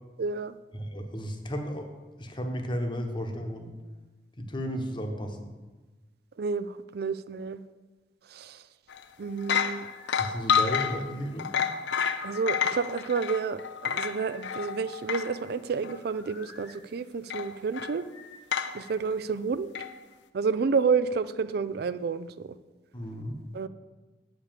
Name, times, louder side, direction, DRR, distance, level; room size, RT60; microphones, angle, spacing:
voice 1, 0.2-0.6 6.4-7.6 8.3-8.6 9.2-9.9 12.2-18.1 18.7-19.7 20.3-22.5 23.5-23.7, right 5 dB, 60° right, 14 dB, 0.4 m, -30 dB
voice 2, 0.7-1.9 2.2-3.7 4.4-5.5 10.2-11.5 22.9-23.4, equal, 25° left, 4 dB, 1.0 m, -34 dB
sound 1, 8.9-9.0 9.4-15.4 15.8-16.0 17.3-17.9 18.5-18.8 19.7-19.9, left 7 dB, 85° left, 0.5 m, -29 dB
sound 2, 9.4-10.2 11.6-12.5 13.8-14.7 15.8-16.8 18.1-19.0, left 4 dB, 65° left, 1.2 m, -51 dB
8.2 x 5.2 x 7.3 m, 1.2 s
head